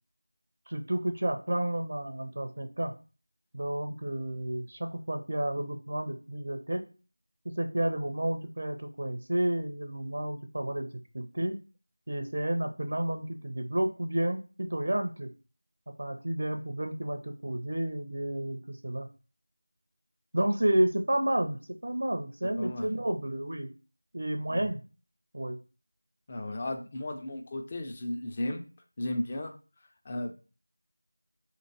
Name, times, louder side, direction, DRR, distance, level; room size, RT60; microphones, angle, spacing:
voice 1, 0.7-2.9 3.5-6.9 7.5-10.9 11.1-11.6 12.1-15.3 16.0-19.1 20.3-21.6 21.8-23.7 24.1-24.8 25.3-25.6, right 1 dB, 50° right, 5 dB, 0.4 m, -31 dB
voice 2, 22.4-22.9 24.5-24.6 26.3-28.6 29.0-29.5 30.1-30.4, left 1 dB, 20° left, 3 dB, 0.4 m, -34 dB
3.0 x 2.5 x 4.1 m, 0.35 s
figure-of-eight pair, 170°, 0 cm